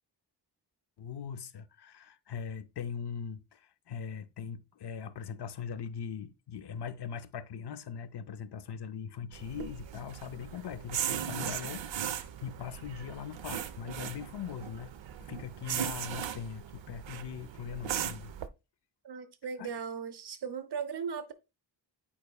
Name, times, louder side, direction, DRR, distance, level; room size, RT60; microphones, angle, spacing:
voice 1, 1.0-14.9 15.3-18.3 19.6-19.7, left 7 dB, 65° left, 0.6 m, -41 dB
sound 1, 9.3-18.5, right 9 dB, 90° right, 0.6 m, -38 dB
voice 2, 19.0-21.3, right 6 dB, 60° right, 0.8 m, -37 dB
8.8 x 4.7 x 2.3 m
wide cardioid pair, 155°, 44 cm